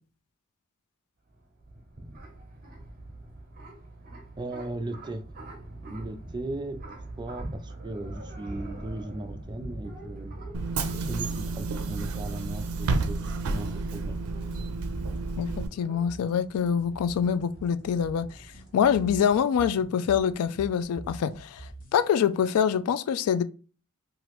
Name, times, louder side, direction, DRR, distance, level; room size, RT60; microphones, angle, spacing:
sound 1, 1.3-19.4, right 1 dB, 40° right, 0.8 m, -44 dB
voice 1, 4.4-5.2 5.8-10.4 11.0-14.2, right 2 dB, 20° right, 0.4 m, -37 dB
Bus / Engine, 10.5-15.7, right 3 dB, 80° right, 0.4 m, -30 dB
sound 2, 14.0-22.0, right 2 dB, 40° left, 0.7 m, -44 dB
voice 2, 15.4-23.4, left 8 dB, 85° left, 0.3 m, -25 dB
3.0 x 2.4 x 3.0 m
head